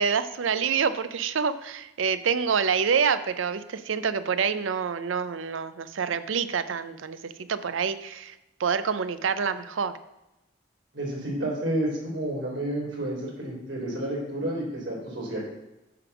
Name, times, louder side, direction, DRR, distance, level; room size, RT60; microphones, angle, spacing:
voice 1, 0.0-8.3 8.6-9.9, right 6 dB, 90° right, 13 dB, 0.5 m, -27 dB
voice 2, 10.9-15.5, right 1 dB, 75° right, -3 dB, 3.2 m, -30 dB
9.5 x 3.5 x 7.0 m, 0.94 s
head